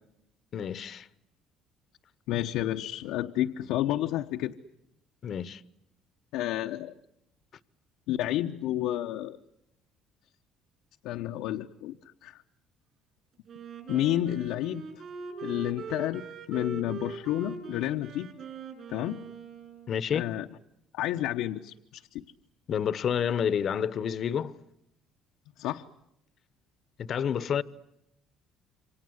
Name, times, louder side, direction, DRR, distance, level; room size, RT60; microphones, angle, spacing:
voice 1, 0.5-1.1 5.2-5.6 19.9-20.2 22.7-24.5 27.0-27.6, left 8 dB, 45° left, 1.0 m, -29 dB
voice 2, 2.3-4.6 6.3-6.9 8.1-9.4 11.0-12.0 12.2-12.4 13.9-14.8 15.4-18.3 18.9-19.2 20.1-20.5 20.9-22.2 25.6-25.8, left 13 dB, 85° left, 0.9 m, -30 dB
Wind instrument woodwind instrument, 13.5-20.2, right 5 dB, 45° right, 6.8 m, -42 dB
28.0 x 25.5 x 7.9 m
cardioid pair, 135°, 0 cm